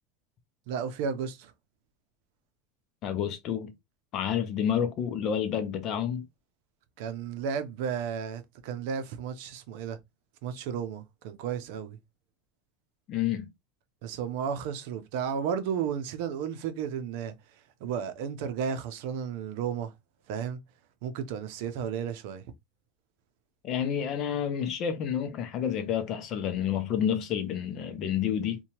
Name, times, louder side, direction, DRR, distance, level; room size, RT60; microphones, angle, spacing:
voice 1, 0.7-1.5 7.0-10.0 10.4-12.0 14.0-17.3 17.8-19.9 20.3-20.6 21.0-22.4, right 7 dB, 70° right, 0.6 m, -33 dB
voice 2, 3.0-3.7 4.1-6.3 13.1-13.5 23.6-28.6, left 9 dB, 45° left, 0.5 m, -29 dB
2.8 x 2.2 x 2.8 m
supercardioid pair, 140°, 0 cm